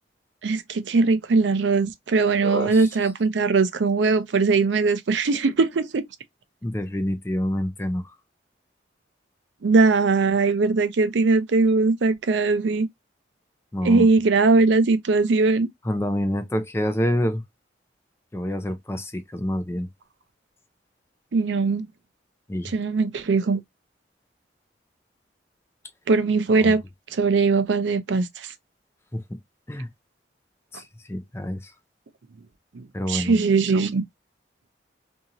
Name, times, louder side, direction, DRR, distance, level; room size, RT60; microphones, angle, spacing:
voice 1, 0.4-6.1 9.6-12.9 13.8-15.7 21.3-21.8 22.6-23.6 26.1-26.8 27.1-28.5 32.7-34.0, right 4 dB, 80° right, 0.5 m, -20 dB
voice 2, 2.4-2.9 6.6-8.0 13.7-14.1 15.8-17.4 18.3-19.9 22.5-22.7 26.6-26.7 29.1-29.4 29.7-29.9 30.7-31.7 32.9-33.3, left 1 dB, 15° left, 0.4 m, -27 dB
2.8 x 2.7 x 2.4 m
head